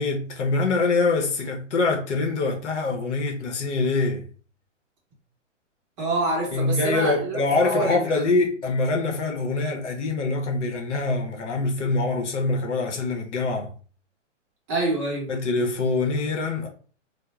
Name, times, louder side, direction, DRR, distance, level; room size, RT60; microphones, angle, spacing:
voice 1, 0.0-4.3 6.5-13.7 15.3-16.7, left 3 dB, 65° left, 0.8 m, -24 dB
voice 2, 6.0-8.3 14.7-15.4, right 2 dB, 25° right, 0.8 m, -26 dB
2.3 x 2.2 x 3.0 m
hypercardioid pair, 140°, 38 cm